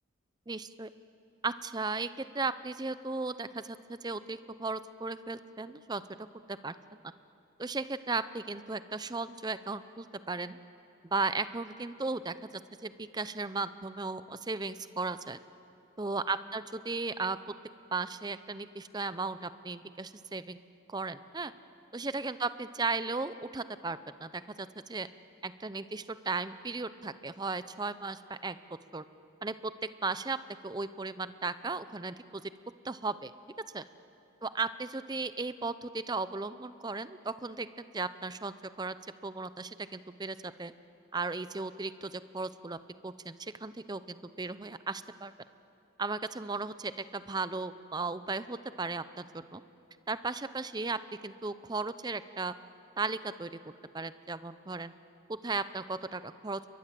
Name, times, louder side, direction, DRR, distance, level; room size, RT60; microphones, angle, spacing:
voice 1, 0.5-0.9 1.4-6.0 6.5-6.7 7.6-10.6 11.0-12.3 12.8-15.4 16.0-17.4 17.9-20.6 20.9-21.5 21.9-25.1 25.4-28.6 28.9-29.0 29.4-29.7 30.0-30.4 30.6-32.4 32.8-33.3 33.7-33.8 34.4-38.9 39.2-40.7 41.1-42.8 43.0-45.3 46.0-49.6 50.1-52.5 53.0-53.6 53.9-54.9 55.3-56.7, right 3 dB, 20° right, 13 dB, 0.6 m, -36 dB
29.5 x 22.5 x 7.7 m, 2.9 s
head